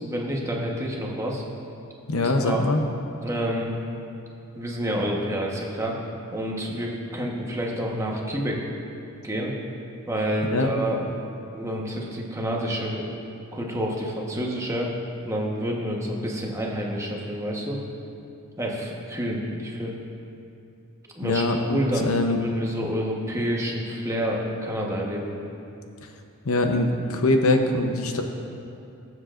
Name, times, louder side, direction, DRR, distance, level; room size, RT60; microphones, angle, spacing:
voice 1, 0.0-1.4 2.1-2.6 3.2-3.7 4.5-5.9 6.3-8.6 9.2-9.5 10.1-13.1 13.5-14.9 15.2-17.8 18.6-20.0 21.1-21.4 21.7-25.3, equal, 15° right, -2 dB, 1.1 m, -28 dB
voice 2, 2.1-2.8 10.5-10.7 21.2-22.4 26.4-28.2, left 2 dB, 75° left, 4 dB, 0.8 m, -23 dB
20.0 x 7.7 x 2.5 m, 2.6 s
head